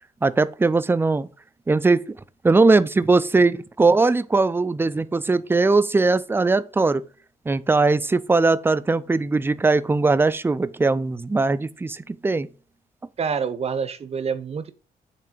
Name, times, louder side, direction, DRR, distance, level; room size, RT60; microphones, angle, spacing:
voice 1, 0.2-1.3 1.7-2.0 2.4-7.0 7.5-12.5, right 3 dB, 15° right, 0.4 m, -20 dB
voice 2, 13.2-14.7, right 6 dB, 40° right, 0.8 m, -27 dB
6.8 x 3.3 x 4.9 m
cardioid pair, 95°, 16 cm